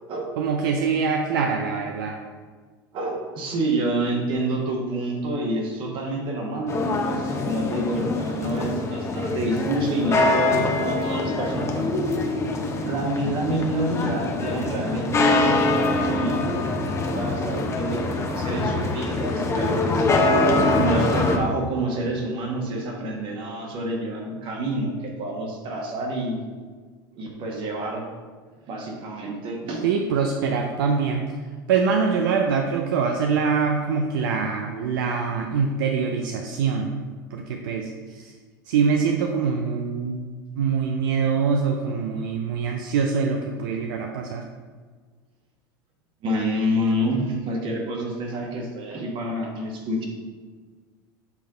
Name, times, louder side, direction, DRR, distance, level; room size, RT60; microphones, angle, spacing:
voice 1, 0.4-2.2 29.8-31.4 31.7-37.0 37.3-38.3 38.7-40.2 40.6-44.5, right 5 dB, 80° right, 3 dB, 0.5 m, -24 dB
voice 2, 2.9-12.1 12.8-16.5 17.1-20.1 20.7-26.4 27.1-28.0 28.6-29.9 46.2-50.0, right 1 dB, 50° right, 1 dB, 1.5 m, -28 dB
sound 1, 6.7-21.4, left 2 dB, 25° left, 0.8 m, -24 dB
7.3 x 3.4 x 3.8 m, 1.5 s
hypercardioid pair, 95°, 11 cm